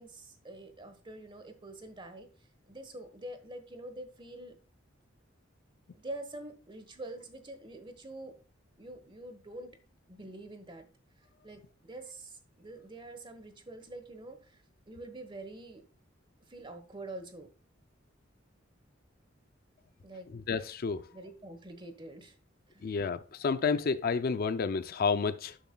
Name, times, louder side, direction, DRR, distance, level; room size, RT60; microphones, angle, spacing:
voice 1, 0.0-2.3 2.7-4.5 5.9-8.3 8.8-9.8 10.1-10.9 11.4-15.9 16.5-17.5 20.0-20.3 21.1-22.4 22.7-22.9, right 1 dB, 25° right, 1.2 m, -46 dB
voice 2, 20.3-21.1 22.8-25.6, left 5 dB, 50° left, 0.4 m, -30 dB
11.0 x 7.1 x 2.2 m
head